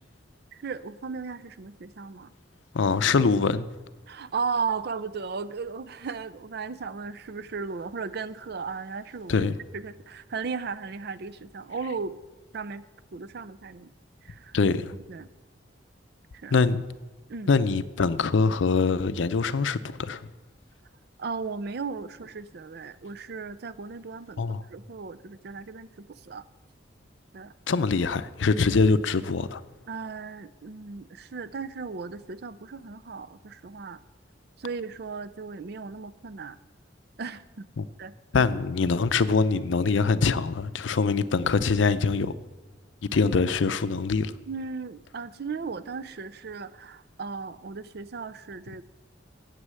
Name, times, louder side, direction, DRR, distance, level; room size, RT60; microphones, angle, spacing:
voice 1, 0.5-2.3 4.1-9.5 9.7-12.2 12.5-12.8 13.1-13.9 14.2-14.6 15.1-15.3 16.3-16.6 17.3-17.5 21.2-24.4 24.7-26.4 27.3-27.5 29.9-34.0 34.6-36.6 37.2-37.7 38.0-38.2 44.5-48.8, right 5 dB, 55° right, 0.5 m, -36 dB
voice 2, 2.7-3.7 9.3-9.6 14.5-14.9 16.5-16.9 17.5-20.3 24.4-24.6 27.7-29.6 37.8-37.9 38.3-42.3 43.1-44.3, left 4 dB, 80° left, 0.5 m, -23 dB
9.8 x 8.2 x 7.5 m
head